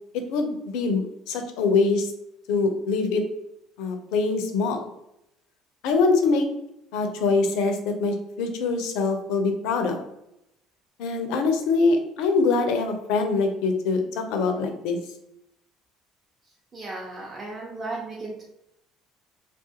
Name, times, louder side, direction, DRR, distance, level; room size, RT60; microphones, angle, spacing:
voice 1, 0.1-2.1 2.5-3.2 3.8-4.8 5.8-6.5 6.9-10.0 11.0-15.0, left 4 dB, 70° left, 5 dB, 0.4 m, -24 dB
voice 2, 16.7-18.4, right 2 dB, 30° right, -4 dB, 0.7 m, -35 dB
2.4 x 2.3 x 2.7 m, 0.82 s
hypercardioid pair, 65°, 0 cm